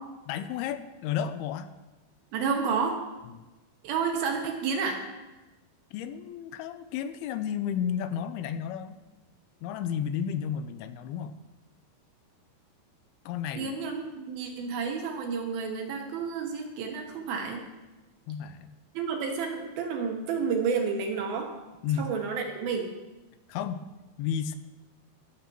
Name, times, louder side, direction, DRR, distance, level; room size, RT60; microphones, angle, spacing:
voice 1, 0.3-1.7 3.3-3.4 5.9-9.0 9.6-11.3 13.3-13.7 18.3-18.8 21.8-22.1 23.5-23.8 24.2-24.6, left 8 dB, 85° left, 10 dB, 2.4 m, -32 dB
voice 2, 2.3-3.0 3.8-5.0 13.6-17.6 18.9-21.5 22.0-22.9, right 5 dB, 75° right, 3 dB, 2.7 m, -30 dB
19.5 x 6.6 x 3.0 m, 1.1 s
omnidirectional pair, 4.6 m